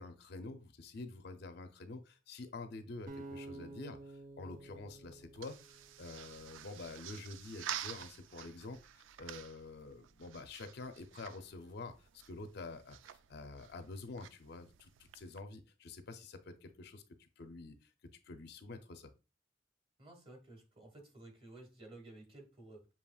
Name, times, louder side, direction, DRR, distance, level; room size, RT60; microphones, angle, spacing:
voice 1, 0.0-17.9 18.3-19.1, left 3 dB, 60° left, 0.5 m, -48 dB
sound 1, 3.1-6.2, right 2 dB, 50° right, 0.8 m, -51 dB
sound 2, 4.5-15.4, right 11 dB, 90° right, 0.3 m, -50 dB
voice 2, 20.0-22.9, right 2 dB, 30° right, 1.3 m, -54 dB
7.0 x 2.9 x 2.3 m
head